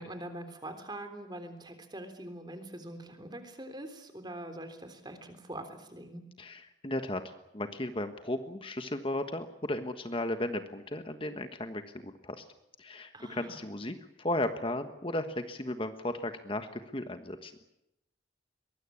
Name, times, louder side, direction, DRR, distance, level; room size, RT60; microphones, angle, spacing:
voice 1, 0.0-6.2 13.1-13.6, right 1 dB, 25° right, 8 dB, 3.6 m, -43 dB
voice 2, 6.4-12.4 12.8-17.5, left 1 dB, 30° left, 8 dB, 1.4 m, -35 dB
23.0 x 20.5 x 8.7 m, 0.88 s
head